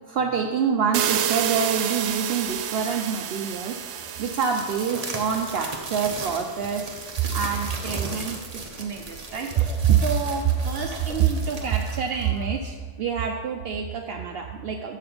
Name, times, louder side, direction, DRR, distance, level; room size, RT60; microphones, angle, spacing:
voice 1, 0.1-3.8 4.2-7.0 7.3-15.0, right 7 dB, 65° right, 3 dB, 0.6 m, -26 dB
sound 1, 0.9-7.8, right 9 dB, 85° right, 1.2 m, -30 dB
sound 2, 2.5-12.8, right 3 dB, 30° right, 0.8 m, -37 dB
7.5 x 5.7 x 6.8 m, 1.4 s
omnidirectional pair, 1.7 m